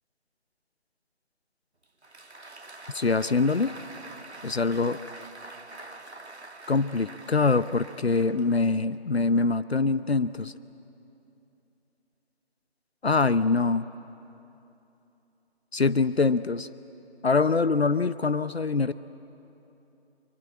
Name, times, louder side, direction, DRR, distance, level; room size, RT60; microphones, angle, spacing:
Applause, 1.8-9.0, right 2 dB, 80° right, 1.6 m, -45 dB
voice 1, 2.9-3.7 4.4-5.0 6.7-10.5 13.0-13.9 15.7-16.7 17.2-18.9, left 4 dB, 70° left, 14 dB, 0.7 m, -24 dB
24.0 x 24.0 x 8.6 m, 2.9 s
figure-of-eight pair, 170°, 33 cm